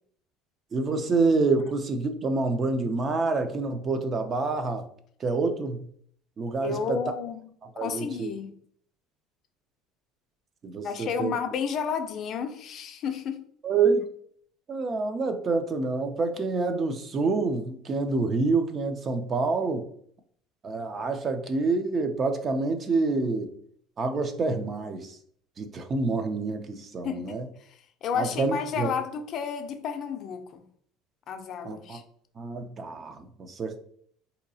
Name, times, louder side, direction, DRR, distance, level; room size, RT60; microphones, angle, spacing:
voice 1, 0.7-4.9 5.2-5.8 6.4-7.0 7.8-8.3 10.6-11.3 13.6-14.1 14.7-19.9 20.6-23.5 24.0-25.2 25.6-27.5 28.1-28.9 31.6-32.0 32.4-33.9, right 3 dB, 35° right, 0.4 m, -27 dB
voice 2, 6.6-7.5 7.8-8.6 10.8-13.4 27.0-30.6 31.3-32.0, left 7 dB, 50° left, 0.5 m, -32 dB
3.9 x 2.8 x 2.6 m
cardioid pair, 120°, 0 cm